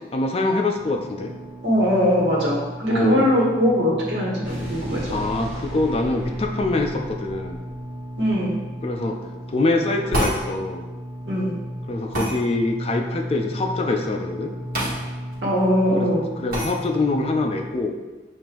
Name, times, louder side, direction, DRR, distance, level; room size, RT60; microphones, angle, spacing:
voice 1, 0.1-1.3 2.9-3.3 5.1-7.6 8.8-9.2 9.5-10.8 11.9-14.5 15.9-16.1 16.4-17.9, left 2 dB, 35° left, 3 dB, 0.4 m, -24 dB
sound 1, 0.7-17.7, equal, 30° right, 1.0 m, -35 dB
voice 2, 1.6-5.2 8.2-8.5 11.3-11.5 15.4-16.3, equal, 90° right, -4 dB, 1.3 m, -21 dB
Explosion, 4.4-8.8, equal, 10° right, 1.1 m, -39 dB
sound 2, 10.1-10.4 12.1-12.3 14.7-15.0 15.3-15.4 16.5-16.7, right 1 dB, 50° right, 1.4 m, -24 dB
7.0 x 2.6 x 3.0 m, 1.2 s
head